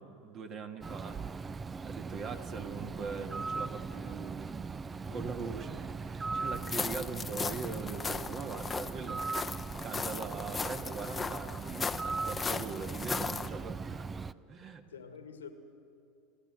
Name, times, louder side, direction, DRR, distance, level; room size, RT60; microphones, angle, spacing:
voice 1, 0.0-1.5 1.8-4.8 5.1-14.1 14.5-14.8, right 5 dB, 40° right, 6 dB, 1.9 m, -42 dB
Bird, 0.8-14.3, right 4 dB, 20° right, 0.5 m, -39 dB
voice 2, 4.9-5.5 14.9-15.5, left 6 dB, 90° left, 8 dB, 1.5 m, -50 dB
sound 1, 6.6-13.5, left 5 dB, 20° left, 0.7 m, -37 dB
27.5 x 12.5 x 7.7 m, 2.6 s
hypercardioid pair, 90°, 0 cm